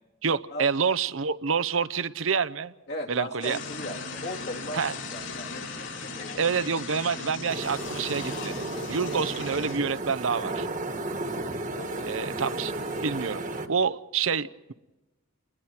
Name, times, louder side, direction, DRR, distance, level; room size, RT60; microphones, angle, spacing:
voice 1, 0.2-2.7 3.1-3.6 4.7-4.9 6.4-8.5 8.9-10.7 12.1-12.7 13.0-13.4 13.7-14.7, right 6 dB, 75° right, 14 dB, 0.8 m, -27 dB
voice 2, 2.9-6.5 11.7-12.3, left 1 dB, 55° left, 2 dB, 2.6 m, -38 dB
sound 1, 3.4-9.8, left 3 dB, 70° left, 6.7 m, -38 dB
sound 2, 7.5-13.7, right 2 dB, 40° right, 1.5 m, -33 dB
29.5 x 21.0 x 4.5 m, 1.1 s
head